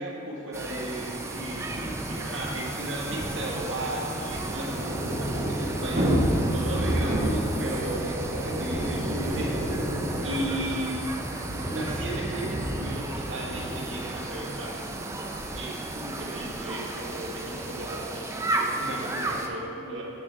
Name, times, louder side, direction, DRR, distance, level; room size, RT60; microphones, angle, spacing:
voice 1, 0.0-6.2 6.5-11.0 11.7-14.8 15.5-20.0, right 1 dB, 70° right, -4 dB, 1.4 m, -35 dB
sound 1, 0.5-19.5, right 2 dB, 15° right, 0.3 m, -34 dB
Thunder / Rain, 2.4-18.3, equal, 35° right, 1.0 m, -32 dB
9.6 x 4.7 x 3.3 m, 2.8 s
head